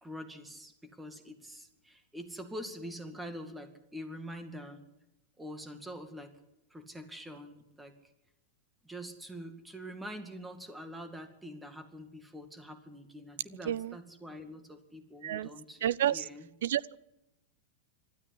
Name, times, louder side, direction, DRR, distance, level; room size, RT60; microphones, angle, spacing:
voice 1, 0.0-4.8 5.4-6.3 6.7-7.9 8.8-16.5, equal, 5° right, 7 dB, 2.1 m, -45 dB
voice 2, 13.6-14.0 15.2-15.5 15.8-16.2 16.6-17.0, right 11 dB, 80° right, 21 dB, 0.7 m, -30 dB
25.0 x 13.0 x 9.9 m, 0.87 s
supercardioid pair, 160°, 0 cm